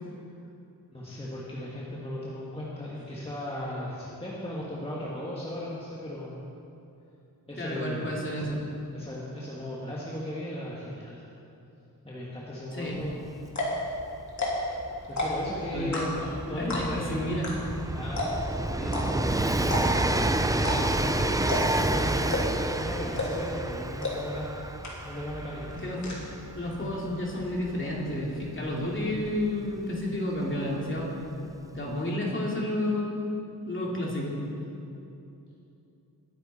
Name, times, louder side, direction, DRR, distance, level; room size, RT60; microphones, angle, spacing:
voice 1, 0.9-6.4 7.5-8.1 8.9-11.2 12.0-13.2 15.1-17.2 17.9-19.2 20.7-22.3 22.8-24.6 25.0-25.7, left 1 dB, 15° left, -6 dB, 1.6 m, -36 dB
voice 2, 7.6-8.6 12.7-13.0 15.7-16.1 16.5-17.5 25.8-26.2 26.5-31.1 31.7-33.2 33.7-34.4, left 1 dB, 30° left, -4 dB, 2.6 m, -31 dB
sound 1, 13.0-13.1 13.5-13.8 14.3-14.7 15.0-15.5 15.9-16.3 16.7-17.0 17.4-17.5 17.8-17.9 18.2-18.5 18.9-19.0 19.6-20.1 20.6-20.8 21.0-21.1 21.5-21.8 22.3-22.7 23.2-23.5 24.0-24.1 24.5-24.6 24.8-25.3 25.5-26.1, left 2 dB, 45° left, 2.8 m, -30 dB
Train, 13.1-13.2 13.4-30.0 31.0-31.1, right 2 dB, 10° right, 0.4 m, -30 dB
20.0 x 9.9 x 4.2 m, 2.8 s
wide cardioid pair, 170°, 39 cm